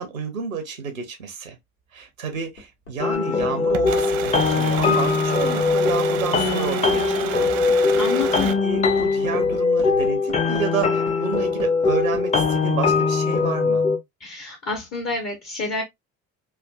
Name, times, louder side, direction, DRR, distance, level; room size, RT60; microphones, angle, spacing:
voice 1, 0.0-1.6 1.9-7.5 7.8-8.0 8.6-13.9, right 6 dB, 85° right, 0.6 m, -30 dB
Hammer, 2.1-12.2 13.6-13.7, left 1 dB, 90° left, 0.7 m, -41 dB
sound 1, 3.0-14.0, left 4 dB, 20° left, 0.5 m, -21 dB
voice 2, 3.3-3.6 8.0-8.6 14.2-15.8, left 4 dB, 40° left, 0.9 m, -29 dB
sound 2, 3.7-8.5, right 9 dB, 40° right, 0.4 m, -30 dB
3.3 x 2.3 x 2.2 m
figure-of-eight pair, 55°, 40 cm